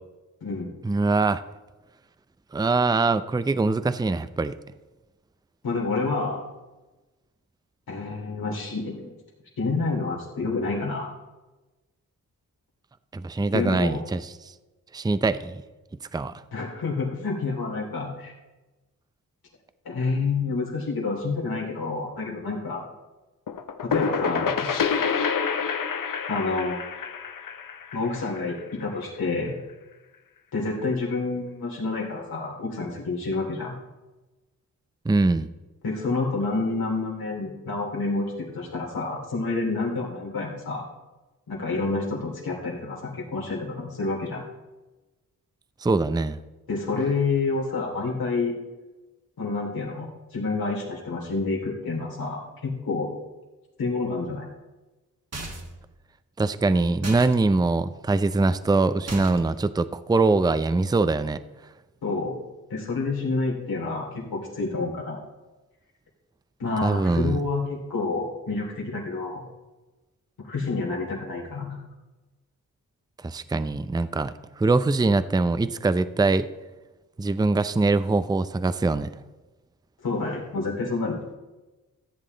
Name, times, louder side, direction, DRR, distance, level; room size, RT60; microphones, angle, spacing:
voice 1, 0.8-1.4 2.5-4.6 13.1-14.3 14.9-15.6 16.1-16.3 35.0-35.5 45.8-46.4 56.4-61.4 66.8-67.4 73.2-76.5 77.2-79.1, right 3 dB, 10° right, 13 dB, 0.5 m, -23 dB
voice 2, 5.6-6.4 7.9-9.1 9.6-11.1 13.5-14.0 16.5-18.3 19.8-22.8 23.8-24.7 26.3-26.9 27.9-29.5 30.5-33.8 35.8-40.8 41.5-44.4 46.7-48.6 49.4-53.1 53.8-54.5 62.0-62.4 62.7-65.2 66.6-69.5 70.4-71.8 80.0-81.2, left 3 dB, 80° left, -2 dB, 2.8 m, -28 dB
sound 1, 23.5-29.0, left 6 dB, 65° left, 0.9 m, -28 dB
sound 2, 55.3-55.8 57.0-57.4 59.1-59.6, right 2 dB, 45° right, 1.8 m, -36 dB
14.5 x 7.4 x 4.0 m, 1.1 s
cardioid pair, 45°, 36 cm